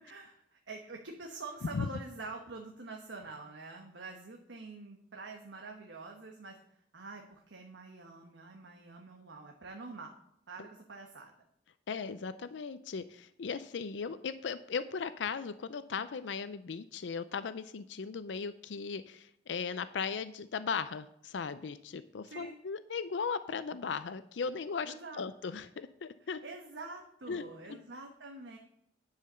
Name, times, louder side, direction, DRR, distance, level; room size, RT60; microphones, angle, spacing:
voice 1, 0.0-6.6 6.9-10.1 10.5-11.3 22.2-22.5 24.8-25.2 26.2-28.6, right 3 dB, 85° right, 2 dB, 1.2 m, -46 dB
voice 2, 11.9-26.4 27.3-27.8, left 5 dB, 80° left, 13 dB, 0.5 m, -37 dB
10.5 x 5.7 x 6.7 m, 0.73 s
head